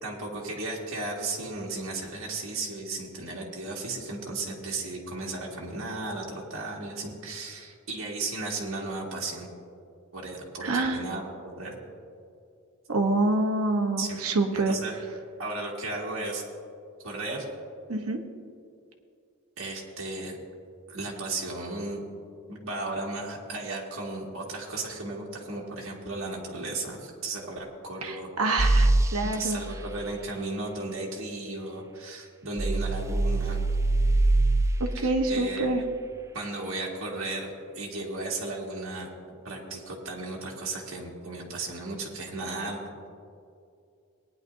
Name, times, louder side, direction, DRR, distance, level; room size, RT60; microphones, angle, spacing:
voice 1, 0.0-9.5 10.1-11.8 14.0-14.2 14.5-15.0 15.4-16.4 17.0-17.5 19.6-20.4 20.9-22.0 22.5-28.3 29.2-33.6 34.9-35.7 36.3-37.5 37.7-39.1 39.4-43.1, right 2 dB, 65° right, -2 dB, 2.1 m, -35 dB
voice 2, 10.6-11.0 12.9-14.7 17.9-18.2 28.0-29.6 34.8-35.8, right 2 dB, 90° right, 3 dB, 1.1 m, -26 dB
sound 1, 28.6-29.1 32.6-34.7, right 2 dB, 15° right, 0.3 m, -22 dB
18.5 x 10.0 x 2.7 m, 2.4 s
head